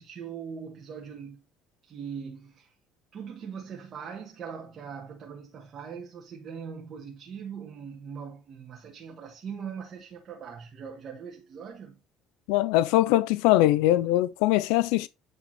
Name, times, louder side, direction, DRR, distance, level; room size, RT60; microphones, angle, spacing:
voice 1, 0.0-1.4 1.8-2.7 3.1-12.0, right 6 dB, 45° right, 1.6 m, -41 dB
voice 2, 12.5-15.1, left 15 dB, 85° left, 0.4 m, -22 dB
9.1 x 3.4 x 4.2 m
cardioid pair, 120°, 0 cm